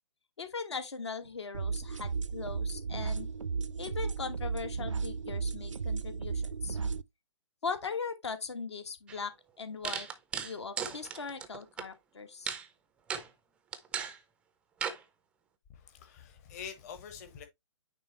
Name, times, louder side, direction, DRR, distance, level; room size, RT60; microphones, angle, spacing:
voice 1, 0.4-3.3 3.8-6.8 7.6-10.1 10.4-12.6, left 5 dB, 60° left, 1.2 m, -39 dB
sound 1, 1.5-7.0, right 5 dB, 75° right, 0.5 m, -34 dB
sound 2, 9.1-9.2 9.8-11.8 12.5-12.6 13.1-13.3 13.7-14.2 14.8-15.0, right 7 dB, 5° right, 0.4 m, -36 dB
voice 2, 15.7-17.5, left 7 dB, 30° left, 1.1 m, -46 dB
9.1 x 3.4 x 3.1 m
figure-of-eight pair, 130°, 16 cm